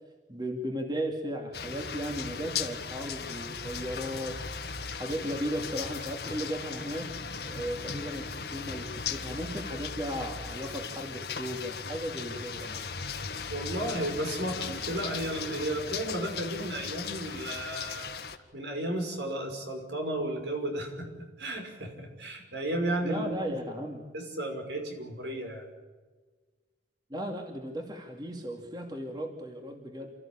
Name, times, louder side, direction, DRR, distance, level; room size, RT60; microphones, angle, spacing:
voice 1, 0.3-4.4 4.9-7.1 7.4-12.9 23.0-24.1 27.1-30.1, equal, 25° right, 2 dB, 2.5 m, -36 dB
sound 1, 1.5-18.4, left 6 dB, 60° left, 1.8 m, -37 dB
voice 2, 13.5-18.1 18.5-23.3 24.1-25.6, right 1 dB, 70° right, 3 dB, 5.9 m, -33 dB
29.5 x 14.5 x 8.8 m, 1.4 s
head